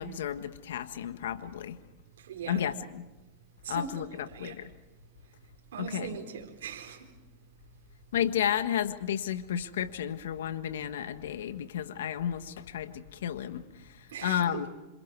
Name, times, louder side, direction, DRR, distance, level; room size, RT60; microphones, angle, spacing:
voice 1, 0.0-1.8 2.5-3.0 3.7-4.1 4.4-4.7 5.8-6.2 8.1-14.7, left 9 dB, 90° left, 1.6 m, -32 dB
voice 2, 2.2-2.6 3.6-4.7 5.7-7.1 14.1-14.6, right 7 dB, 90° right, 4.0 m, -40 dB
28.0 x 26.5 x 4.8 m
supercardioid pair, 135°, 0 cm